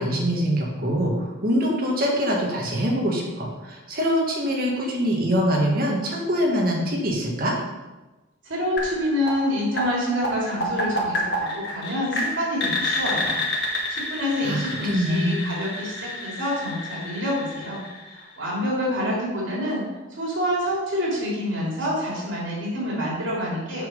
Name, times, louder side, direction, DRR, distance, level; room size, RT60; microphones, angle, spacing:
voice 1, 0.0-7.5 14.4-15.4, equal, 50° right, -2 dB, 1.9 m, -24 dB
voice 2, 8.4-13.4 13.7-17.8 18.1-19.8 20.1-23.9, equal, 90° right, -4 dB, 3.1 m, -27 dB
sound 1, 8.8-18.6, left 1 dB, 60° left, 2.0 m, -30 dB
7.3 x 5.6 x 5.5 m, 1.1 s
head